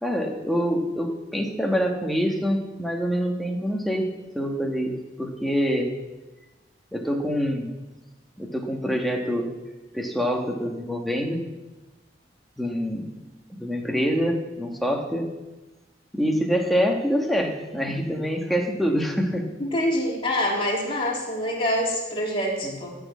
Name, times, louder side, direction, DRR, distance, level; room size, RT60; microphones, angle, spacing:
voice 1, 0.0-5.9 6.9-7.7 8.4-9.5 9.9-11.4 12.6-13.1 13.6-15.3 16.1-19.5 22.6-22.8, equal, ahead, 1 dB, 1.5 m, -25 dB
voice 2, 19.6-22.9, equal, 30° left, -3 dB, 3.3 m, -25 dB
14.0 x 6.3 x 8.5 m, 1.1 s
head